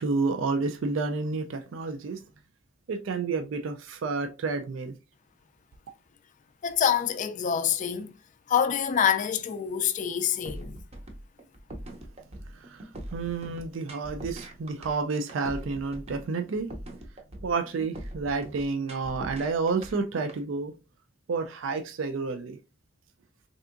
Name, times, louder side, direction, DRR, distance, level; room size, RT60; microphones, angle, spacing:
voice 1, 0.0-2.2 2.9-4.9 12.5-16.7 17.4-20.8 21.3-22.6, right 4 dB, 75° right, 0.4 m, -30 dB
voice 2, 6.6-8.1 8.5-10.8, left 8 dB, 40° left, 0.3 m, -26 dB
sound 1, 10.5-20.4, right 1 dB, 35° right, 0.6 m, -41 dB
3.4 x 2.7 x 2.4 m
head